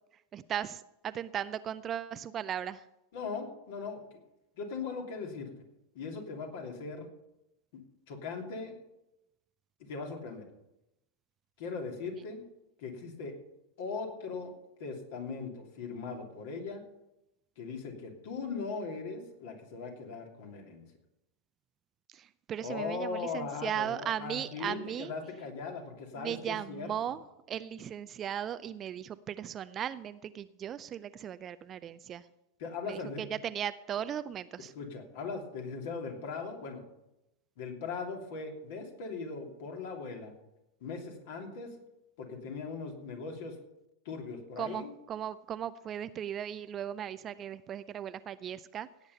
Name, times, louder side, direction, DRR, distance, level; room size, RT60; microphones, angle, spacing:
voice 1, 0.3-2.9 22.1-25.1 26.2-27.2 27.5-32.3 32.9-34.7 44.6-48.9, right 9 dB, 25° right, 15 dB, 0.5 m, -37 dB
voice 2, 3.1-4.2 4.6-5.5 5.9-7.1 7.7-7.8 8.1-8.7 9.8-10.4 11.6-12.4 12.8-13.3 13.8-14.5 14.8-16.8 17.6-20.8 22.6-27.0 32.6-33.2 34.7-36.8 37.6-40.3 40.8-41.7 42.2-43.5 44.0-44.9, left 4 dB, 50° left, 2 dB, 2.8 m, -39 dB
17.0 x 8.9 x 5.6 m, 0.91 s
figure-of-eight pair, 90°, 0 cm